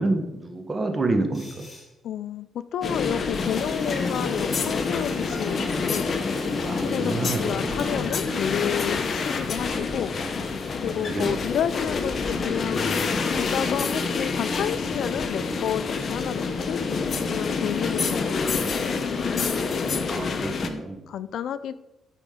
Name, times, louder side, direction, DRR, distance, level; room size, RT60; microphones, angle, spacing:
voice 1, 0.0-1.7 6.7-7.8 11.1-11.4 20.1-21.0, right 2 dB, 30° right, 6 dB, 1.1 m, -28 dB
sound 1, 1.3-1.9 4.3-5.5, left 1 dB, 15° left, 2.9 m, -48 dB
voice 2, 2.0-6.1 6.8-10.1 10.8-16.8 17.3-20.2 21.1-21.7, left 9 dB, 70° left, 15 dB, 0.4 m, -31 dB
sound 2, 2.8-20.7, left 4 dB, 50° left, 0.8 m, -27 dB
sound 3, 3.4-13.0, right 1 dB, 5° right, 2.4 m, -42 dB
12.0 x 5.1 x 3.8 m, 1.0 s
cardioid pair, 90°, 0 cm